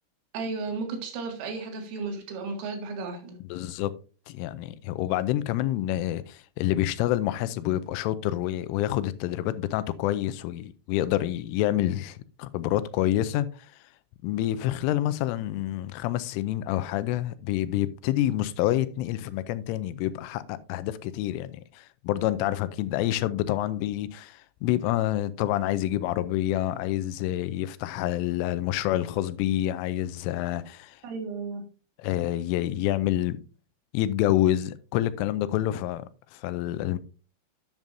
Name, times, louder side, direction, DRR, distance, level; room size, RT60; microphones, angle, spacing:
voice 1, 0.3-3.4 31.0-31.7, right 4 dB, 90° right, 4.6 m, -34 dB
voice 2, 3.5-3.9 4.3-13.5 14.2-31.0 32.0-33.4 33.9-36.0 36.3-37.0, left 13 dB, 85° left, 3.1 m, -27 dB
10.5 x 9.0 x 2.6 m
omnidirectional pair, 5.7 m